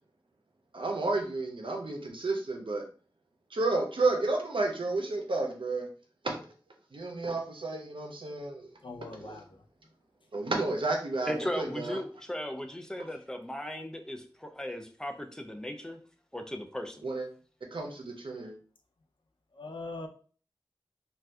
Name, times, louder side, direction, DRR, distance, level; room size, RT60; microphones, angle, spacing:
voice 1, 0.7-2.8 3.5-5.9 6.2-6.4 6.9-8.7 9.2-9.4 10.3-12.0 17.0-17.3 17.7-18.5, right 2 dB, 85° right, 0.6 m, -31 dB
voice 2, 8.8-9.6 19.5-20.1, left 3 dB, 75° left, 0.4 m, -41 dB
voice 3, 11.2-16.0 16.3-17.1, left 1 dB, 10° left, 0.5 m, -37 dB
2.6 x 2.3 x 3.4 m
wide cardioid pair, 60°, 8 cm